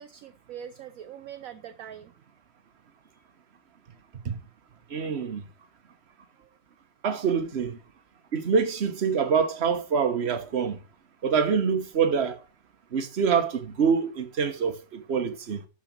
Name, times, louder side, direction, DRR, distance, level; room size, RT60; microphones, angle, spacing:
voice 1, 0.0-2.1 6.4-6.5, right 9 dB, 65° right, 0.9 m, -43 dB
voice 2, 4.9-5.4 7.0-7.8 8.3-10.8 11.2-12.4 12.9-15.6, right 6 dB, 40° right, 1.2 m, -25 dB
12.0 x 5.0 x 5.2 m
omnidirectional pair, 1.9 m